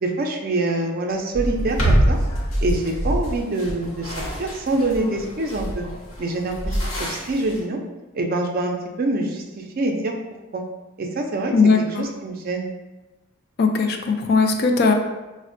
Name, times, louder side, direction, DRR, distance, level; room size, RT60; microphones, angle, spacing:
voice 1, 0.0-2.2 2.6-5.8 6.2-7.8 8.1-10.1 10.5-10.6 11.0-11.5 12.0-12.7, right 2 dB, 45° right, 2 dB, 0.4 m, -25 dB
sound 1, 1.3-7.6, equal, 85° left, 0.9 m, -25 dB
voice 2, 11.5-12.1 13.6-14.9, left 4 dB, 50° left, 4 dB, 0.3 m, -18 dB
4.9 x 2.0 x 2.5 m, 1.1 s
head